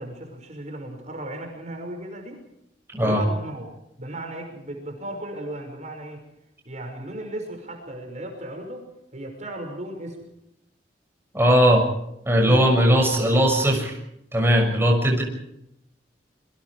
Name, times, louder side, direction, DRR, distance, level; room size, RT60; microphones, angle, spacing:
voice 1, 0.0-2.5 3.0-3.7 4.0-6.2 6.6-8.9 9.1-10.3 12.4-12.8, right 1 dB, 40° right, 3 dB, 5.7 m, -35 dB
voice 2, 2.9-3.2 11.3-11.9 12.3-14.0 14.3-15.2, equal, 15° right, 1 dB, 6.6 m, -19 dB
28.0 x 24.0 x 4.8 m, 0.79 s
head